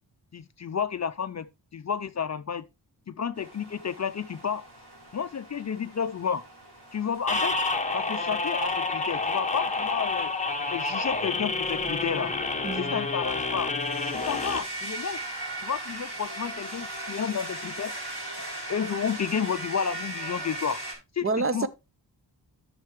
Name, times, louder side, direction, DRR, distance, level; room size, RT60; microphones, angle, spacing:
voice 1, 0.3-1.5 1.7-2.6 3.1-4.6 5.1-6.4 6.9-7.6 7.9-10.3 10.7-12.3 12.7-13.7 14.1-15.2 15.6-17.9 18.7-20.8 21.1-21.7, left 7 dB, 40° left, 0.5 m, -31 dB
sound 1, 3.4-21.0, right 1 dB, 65° right, 5.5 m, -40 dB
sound 2, 7.3-14.6, left 3 dB, 15° left, 1.1 m, -29 dB
voice 2, 12.6-13.0 21.2-21.7, right 3 dB, 30° right, 0.7 m, -28 dB
10.5 x 6.8 x 3.1 m
wide cardioid pair, 100°, 43 cm